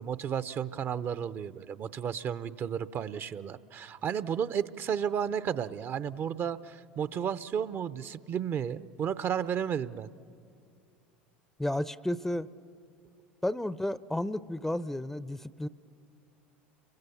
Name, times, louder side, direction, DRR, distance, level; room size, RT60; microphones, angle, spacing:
voice 1, 0.0-10.1, right 8 dB, 40° right, 15 dB, 0.7 m, -33 dB
voice 2, 11.6-12.5 13.4-15.7, left 1 dB, 5° left, 17 dB, 0.6 m, -32 dB
30.0 x 22.5 x 7.1 m, 2.3 s
hypercardioid pair, 75°, 6 cm